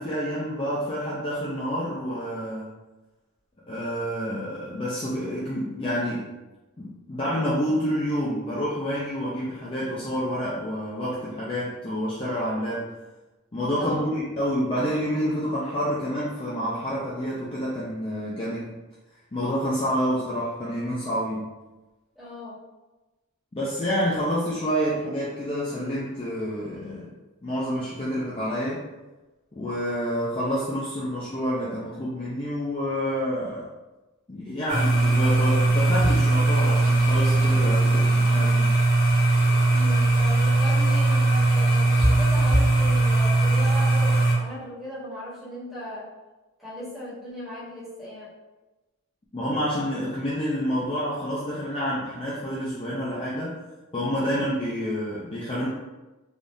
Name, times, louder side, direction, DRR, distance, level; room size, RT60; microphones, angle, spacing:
voice 1, 0.0-2.7 3.7-6.3 6.8-12.9 13.5-18.8 19.3-21.5 23.5-27.1 27.4-28.8 29.5-33.7 34.3-38.7 49.3-53.6 53.9-55.7, equal, 25° left, -7 dB, 0.4 m, -28 dB
voice 2, 13.8-14.1 22.1-22.6 39.7-46.1 46.6-48.3, left 1 dB, ahead, -11 dB, 1.2 m, -37 dB
sound 1, 34.7-44.3, right 2 dB, 60° left, 1.1 m, -20 dB
3.4 x 2.3 x 2.6 m, 1.1 s
head